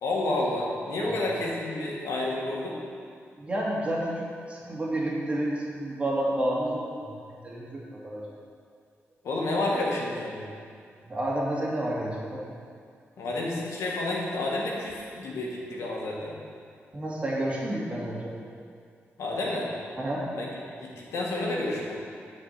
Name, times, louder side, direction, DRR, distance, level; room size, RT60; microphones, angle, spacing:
voice 1, 0.0-2.8 9.2-10.4 13.2-16.3 19.2-19.7 20.3-21.9, left 2 dB, 90° left, -3 dB, 2.1 m, -30 dB
voice 2, 3.4-8.3 11.1-12.4 16.9-18.3 20.0-20.2, right 1 dB, 25° right, -5 dB, 2.5 m, -30 dB
10.0 x 5.3 x 7.9 m, 2.2 s
cardioid pair, 110°, 5 cm